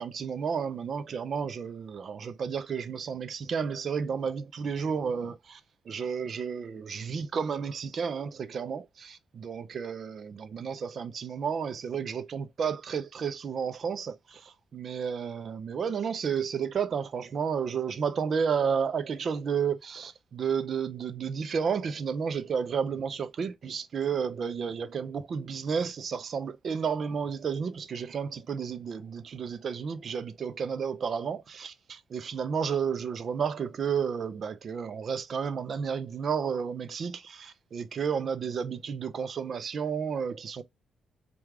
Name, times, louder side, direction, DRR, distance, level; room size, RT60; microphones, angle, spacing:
voice 1, 0.0-5.6 5.9-40.6, right 6 dB, 40° right, 0.4 m, -32 dB
4.6 x 2.3 x 3.5 m
cardioid pair, 155°, 0 cm